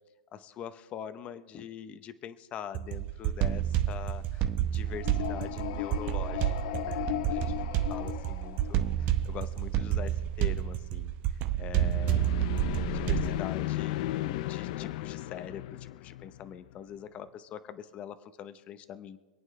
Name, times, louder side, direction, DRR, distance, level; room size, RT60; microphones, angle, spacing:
voice 1, 0.3-7.5 7.9-12.3 12.9-19.2, left 9 dB, 25° left, 12 dB, 0.8 m, -43 dB
sound 1, 2.7-13.4, right 12 dB, 35° right, 0.8 m, -30 dB
sound 2, 4.9-9.2 11.8-16.8, left 15 dB, 55° left, 0.4 m, -36 dB
26.0 x 9.0 x 3.3 m, 1.2 s
hypercardioid pair, 145°, 5 cm